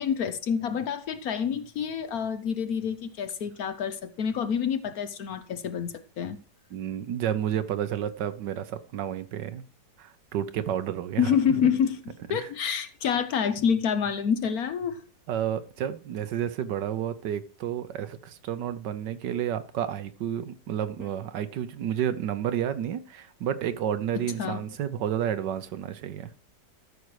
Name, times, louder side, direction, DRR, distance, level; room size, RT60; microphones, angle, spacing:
voice 1, 0.0-6.4 11.2-12.0 12.3-15.0 24.4-24.6, left 7 dB, 65° left, 1.2 m, -27 dB
voice 2, 6.7-9.6 10.0-11.6 12.3-12.5 15.3-26.3, right 10 dB, 75° right, 1.4 m, -31 dB
13.0 x 6.1 x 4.8 m
omnidirectional pair, 1.9 m